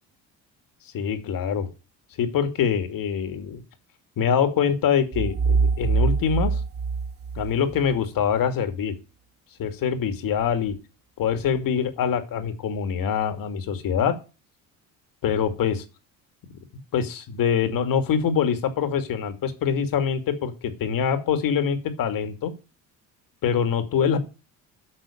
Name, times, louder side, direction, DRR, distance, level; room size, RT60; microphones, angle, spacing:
voice 1, 0.9-1.7 2.2-3.6 4.2-6.6 7.4-9.0 9.6-10.8 11.2-14.2 15.2-15.8 16.9-22.5 23.4-24.2, left 7 dB, 60° left, 8 dB, 2.5 m, -24 dB
sound 1, 5.1-8.0, right 5 dB, 25° right, 1.3 m, -24 dB
10.0 x 6.4 x 8.5 m, 0.32 s
cardioid pair, 105°, 37 cm